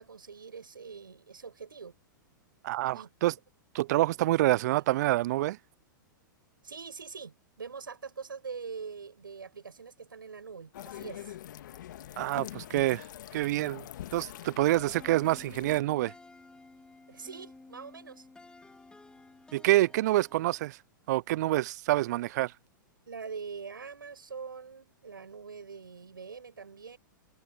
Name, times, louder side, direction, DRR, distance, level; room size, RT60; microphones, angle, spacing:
voice 1, 0.0-2.0 2.9-3.4 4.8-4.9 6.6-11.3 17.1-18.3 23.1-27.0, right 5 dB, 85° right, 6.7 m, -43 dB
voice 2, 2.6-3.3 3.7-5.6 12.2-13.0 13.3-13.9 14.1-16.1 19.5-20.8 21.1-22.5, right 16 dB, 55° right, 0.4 m, -27 dB
sound 1, 10.7-15.8, left 12 dB, 65° left, 1.6 m, -44 dB
sound 2, 14.9-20.7, left 3 dB, 10° left, 2.4 m, -54 dB
hypercardioid pair, 105°, 11 cm